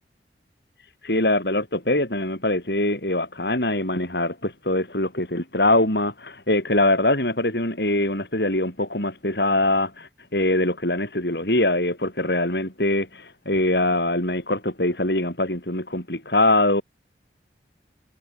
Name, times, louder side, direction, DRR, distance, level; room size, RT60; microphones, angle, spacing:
voice 1, 1.0-16.8, left 1 dB, 60° left, 6.2 m, -23 dB
head